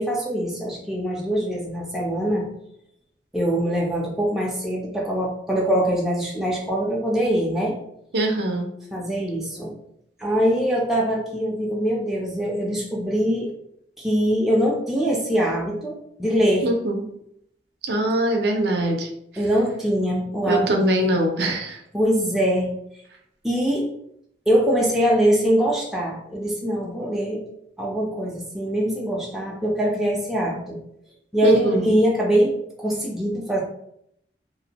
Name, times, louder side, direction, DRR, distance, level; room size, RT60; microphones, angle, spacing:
voice 1, 0.0-2.5 3.3-7.8 8.9-9.7 10.2-13.5 14.0-16.7 19.4-21.2 21.9-22.7 23.4-23.9 24.5-27.4 27.8-30.8 31.3-33.6, equal, ahead, -3 dB, 0.3 m, -23 dB
voice 2, 8.1-8.7 16.6-17.0 17.8-19.1 20.5-21.8 31.4-31.9, right 1 dB, 65° right, 3 dB, 0.5 m, -22 dB
2.5 x 2.0 x 2.8 m, 0.73 s
head